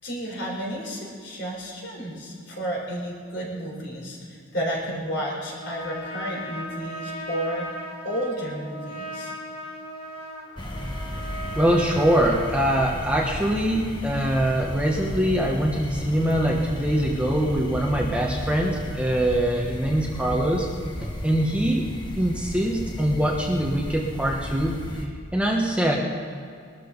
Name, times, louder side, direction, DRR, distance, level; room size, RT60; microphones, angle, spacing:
voice 1, 0.0-7.7 8.0-9.3, equal, 55° left, -2 dB, 4.1 m, -32 dB
Trumpet, 5.4-13.0, equal, 90° left, 2.7 m, -37 dB
sound 1, 10.6-25.1, equal, 20° left, 1.3 m, -34 dB
voice 2, 11.5-20.7 21.0-21.9 22.2-24.7 25.3-26.0, right 1 dB, 5° right, -2 dB, 1.1 m, -23 dB
21.5 x 13.0 x 4.0 m, 2.3 s
head